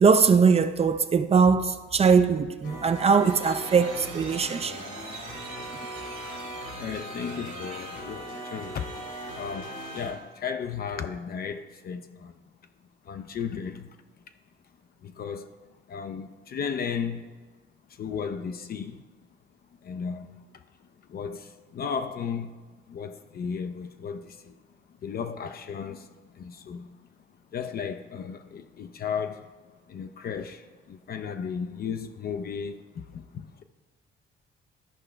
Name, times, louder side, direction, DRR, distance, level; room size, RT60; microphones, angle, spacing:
voice 1, 0.0-4.8, right 5 dB, 30° right, 0.4 m, -21 dB
sound 1, 2.6-10.1, equal, 80° left, 2.1 m, -39 dB
sound 2, 3.1-10.3, right 4 dB, 90° right, 1.4 m, -44 dB
voice 2, 6.8-8.9 9.3-12.3 13.1-14.0 15.0-15.5 15.9-17.3 18.0-19.0 19.8-20.3 21.1-22.5 22.9-24.5 25.0-26.9 27.5-29.5 29.9-33.6, left 6 dB, 50° left, 0.5 m, -35 dB
13.0 x 4.8 x 3.3 m
cardioid pair, 90°, 20 cm